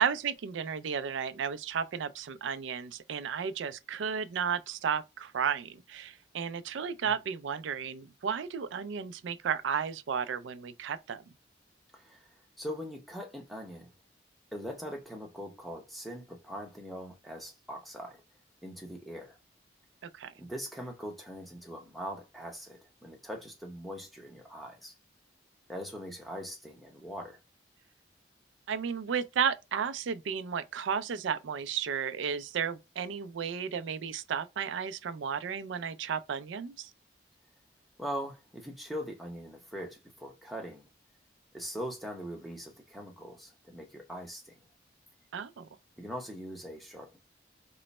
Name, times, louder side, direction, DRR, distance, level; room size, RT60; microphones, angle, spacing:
voice 1, 0.0-11.2 20.0-20.3 28.7-36.9 45.3-45.7, right 7 dB, 85° right, 0.4 m, -33 dB
voice 2, 11.9-12.3 12.6-13.9 14.5-18.2 18.6-19.4 20.4-24.9 25.7-27.4 38.0-40.9 41.5-44.6 46.0-47.2, equal, ahead, 0.7 m, -41 dB
3.0 x 2.0 x 4.1 m
head